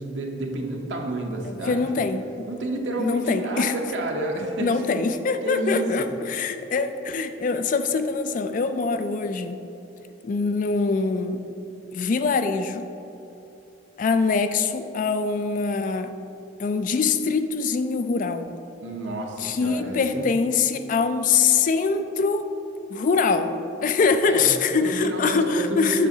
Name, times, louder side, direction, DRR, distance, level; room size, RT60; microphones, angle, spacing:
voice 1, 0.0-2.0 2.5-4.8 5.4-6.1 14.2-14.3 18.8-20.3 24.3-26.1, right 1 dB, 75° right, 1 dB, 0.7 m, -30 dB
voice 2, 1.4-2.5 3.0-3.7 4.6-9.6 10.2-11.4 11.9-12.9 14.0-16.1 16.6-18.5 19.4-22.5 22.9-26.1, left 4 dB, 45° left, 10 dB, 0.3 m, -23 dB
7.4 x 6.6 x 2.7 m, 3.0 s
head